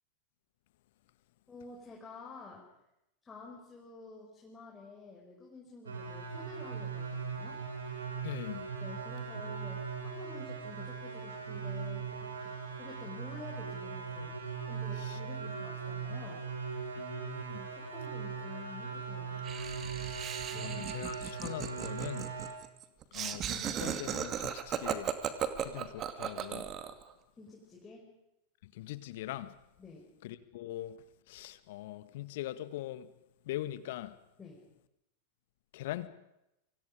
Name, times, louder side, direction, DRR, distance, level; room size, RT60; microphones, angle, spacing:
voice 1, 1.5-2.7 3.2-7.6 8.8-14.4 14.7-16.4 17.6-19.5 20.5-21.2 27.4-28.1 29.8-30.1 34.4-34.7, left 4 dB, 15° left, 5.3 m, -50 dB
sound 1, 5.9-22.5, right 5 dB, 70° right, 5.6 m, -39 dB
voice 2, 8.2-8.7 15.1-15.2 16.9-17.6 20.0-20.3 20.6-22.3 23.1-25.1 25.6-26.7 28.6-29.5 30.2-31.0 31.3-33.1 33.5-34.1 35.7-36.1, left 14 dB, 55° left, 1.7 m, -41 dB
Laughter, 19.4-27.0, right 9 dB, 30° right, 2.2 m, -37 dB
29.0 x 25.5 x 5.2 m
figure-of-eight pair, 90°, 0 cm